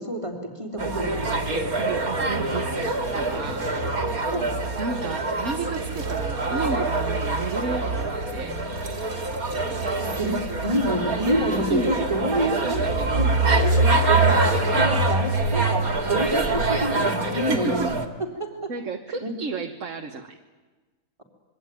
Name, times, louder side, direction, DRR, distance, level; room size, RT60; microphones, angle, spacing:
voice 1, 0.0-1.3 4.3-4.5 10.2-13.3 13.6-15.8 16.1-17.9 18.2-18.7 19.2-19.3, equal, 20° right, 3 dB, 3.5 m, -27 dB
sound 1, 0.8-18.1, right 2 dB, 80° right, 2.7 m, -24 dB
voice 2, 1.6-3.8 4.8-8.6 10.7-10.8 11.3-11.4 11.7-13.3 17.4-17.9 18.7-20.4, right 4 dB, 60° right, 4 dB, 1.7 m, -32 dB
26.5 x 22.5 x 9.3 m, 1.3 s
omnidirectional pair, 1.5 m